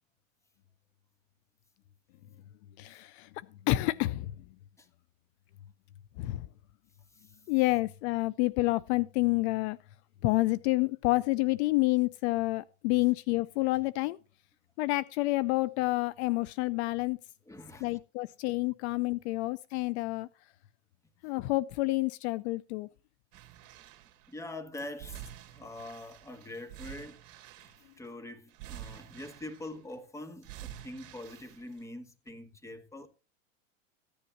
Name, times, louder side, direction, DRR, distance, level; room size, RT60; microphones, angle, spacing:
voice 1, 2.8-3.3 3.7-4.3 6.2-6.5 7.5-9.8 10.2-14.2 14.8-17.2 17.8-20.3 21.2-22.9, left 21 dB, 60° left, 0.6 m, -28 dB
voice 2, 17.5-17.9 24.3-27.2 27.6-27.7 28.0-33.1, left 1 dB, 10° left, 1.3 m, -44 dB
sound 1, 23.3-24.3 25.0-28.1 28.5-29.9 30.4-31.9 32.3-32.4, right 12 dB, 50° right, 2.0 m, -48 dB
15.0 x 10.0 x 3.0 m
hypercardioid pair, 115°, 38 cm